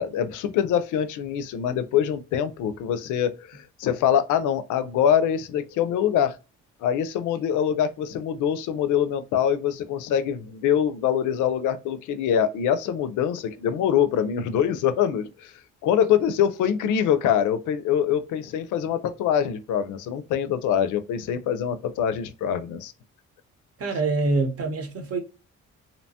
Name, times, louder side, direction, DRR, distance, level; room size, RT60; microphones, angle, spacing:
voice 1, 0.0-6.4 6.8-15.5 15.8-22.9, left 9 dB, 80° left, 0.5 m, -24 dB
voice 2, 23.8-25.2, right 3 dB, 50° right, 0.9 m, -25 dB
2.8 x 2.2 x 2.7 m
cardioid pair, 90°, 30 cm